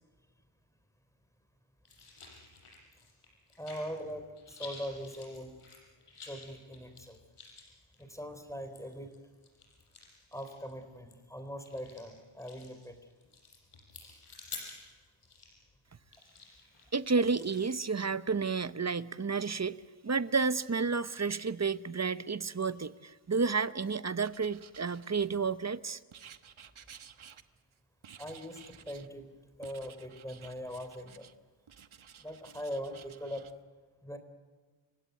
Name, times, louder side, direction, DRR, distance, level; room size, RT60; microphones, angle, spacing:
sound 1, 1.8-4.1 4.4-17.8, left 4 dB, 80° left, 6.6 m, -51 dB
voice 1, 3.6-5.5 6.2-7.2 8.0-9.1 10.3-13.0 14.0-14.2 28.2-29.3 29.6-31.3 32.2-33.5 34.0-34.2, equal, 5° left, 8 dB, 3.6 m, -41 dB
voice 2, 16.9-19.8 20.0-26.0, right 4 dB, 30° right, 15 dB, 0.8 m, -31 dB
Writing, 24.2-25.5 26.1-27.7 28.0-29.1 29.6-31.3 31.7-33.5, right 8 dB, 70° right, 1.2 m, -54 dB
29.5 x 17.0 x 9.2 m, 1.5 s
wide cardioid pair, 70°, 50 cm